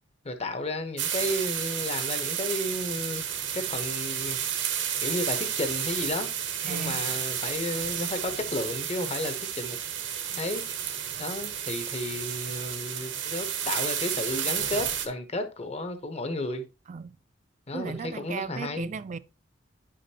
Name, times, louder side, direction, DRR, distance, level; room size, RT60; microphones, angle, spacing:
voice 1, 0.2-3.3 3.5-4.4 5.0-6.3 6.6-9.8 10.4-10.6 11.2-16.6 17.7-18.9, left 1 dB, 35° left, 0.9 m, -33 dB
sound 1, 1.0-15.1, right 9 dB, 75° right, 1.0 m, -31 dB
voice 2, 6.7-7.1 10.3-10.4 11.1-11.2 16.9-17.2 17.7-19.2, right 5 dB, 40° right, 0.4 m, -36 dB
9.4 x 5.1 x 2.9 m
head